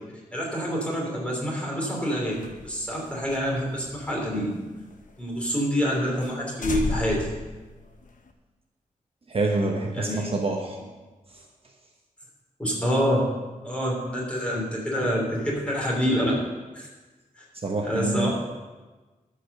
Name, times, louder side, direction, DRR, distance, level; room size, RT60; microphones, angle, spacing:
voice 1, 0.3-4.5 5.2-7.3 9.9-10.3 12.6-13.2 13.6-16.3 16.7-16.9 17.4-17.5 17.8-18.3, equal, 10° left, -3 dB, 3.1 m, -27 dB
sound 1, 2.3-5.1 5.4-5.5 5.9-6.0 6.2-6.4 6.6-8.3, left 3 dB, 65° left, 1.0 m, -34 dB
voice 2, 9.3-10.8 11.3-11.4 17.5-18.3, right 2 dB, 40° right, 0 dB, 1.0 m, -27 dB
12.5 x 5.1 x 6.7 m, 1.2 s
wide cardioid pair, 135°, 15 cm